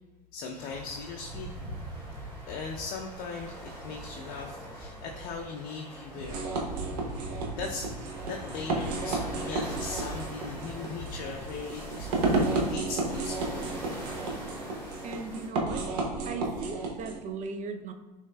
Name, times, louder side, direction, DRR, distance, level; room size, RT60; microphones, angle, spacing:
voice 1, 0.3-1.5 2.5-6.5 7.5-7.9 8.2-12.1 12.3-13.7, left 4 dB, 45° left, 1 dB, 0.5 m, -39 dB
sound 1, 0.6-15.5, right 1 dB, 85° right, 1.4 m, -41 dB
sound 2, 6.2-17.2, right 3 dB, 65° right, 0.8 m, -32 dB
voice 2, 15.0-15.9 16.2-17.9, right 4 dB, 35° right, 7 dB, 0.5 m, -37 dB
6.3 x 3.4 x 2.2 m, 1.3 s
hypercardioid pair, 75°, 21 cm